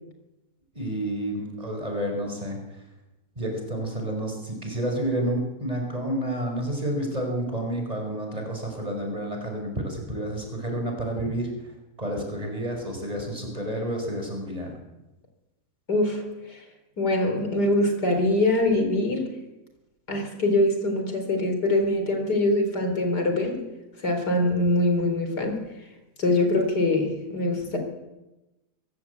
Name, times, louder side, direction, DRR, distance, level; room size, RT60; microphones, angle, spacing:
voice 1, 0.7-2.6 3.4-14.8, right 1 dB, 20° right, 2 dB, 5.4 m, -30 dB
voice 2, 15.9-16.6 17.0-19.3 20.1-23.6 24.0-25.6 26.2-27.8, left 1 dB, 75° left, 5 dB, 4.6 m, -23 dB
23.5 x 15.5 x 8.3 m, 1.0 s
omnidirectional pair, 1.7 m